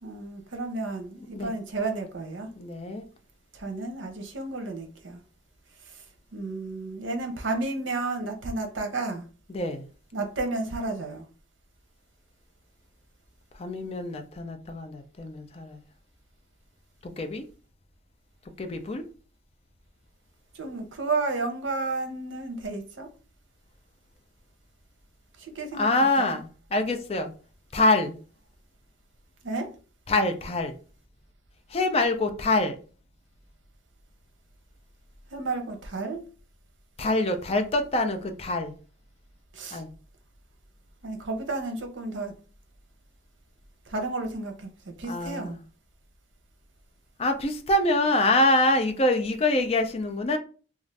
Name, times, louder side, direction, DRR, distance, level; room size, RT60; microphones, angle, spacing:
voice 1, 0.0-2.5 3.5-5.2 5.8-6.0 6.3-9.3 10.1-11.3 20.5-23.1 25.4-26.4 29.4-29.7 35.3-36.2 39.5-39.8 41.0-42.3 43.9-45.6, right 3 dB, 75° right, 0.7 m, -32 dB
voice 2, 2.6-3.1 9.5-9.9 13.6-15.8 17.0-17.4 18.6-19.0 25.8-27.3 27.7-28.2 30.1-30.8 31.7-32.8 37.0-38.7 39.7-39.9 45.1-45.6 47.2-50.4, left 2 dB, 30° left, 0.4 m, -25 dB
2.5 x 2.4 x 3.1 m
head